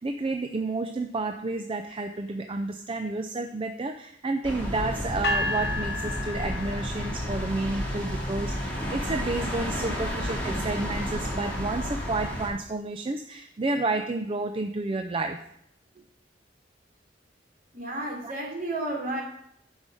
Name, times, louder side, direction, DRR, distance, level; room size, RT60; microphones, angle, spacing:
voice 1, 0.0-15.4 18.2-18.3, right 2 dB, 30° right, 6 dB, 0.5 m, -30 dB
sound 1, 4.4-12.5, equal, 10° left, 2.4 m, -31 dB
sound 2, 5.2-7.3, left 2 dB, 65° left, 1.1 m, -31 dB
voice 2, 17.7-19.2, right 2 dB, 55° right, -2 dB, 3.2 m, -32 dB
9.8 x 5.5 x 6.2 m, 0.74 s
head